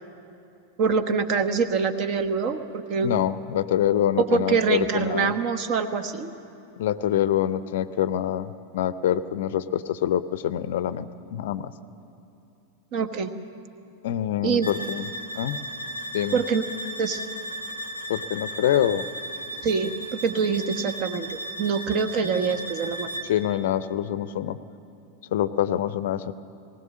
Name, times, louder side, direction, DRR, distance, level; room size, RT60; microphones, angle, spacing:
voice 1, 0.8-3.1 4.2-6.3 12.9-13.3 14.4-14.7 16.3-16.6 17.0-17.2 19.6-23.1, right 5 dB, 40° right, 10 dB, 1.1 m, -25 dB
voice 2, 3.0-5.3 6.8-11.7 14.0-15.1 15.4-15.6 16.1-16.4 18.1-19.0 23.3-24.6 25.3-26.3, left 11 dB, 55° left, 15 dB, 0.5 m, -25 dB
sound 1, 14.6-23.4, right 1 dB, 85° right, 1.8 m, -36 dB
20.0 x 18.0 x 7.6 m, 2.9 s
figure-of-eight pair, 90°, 0 cm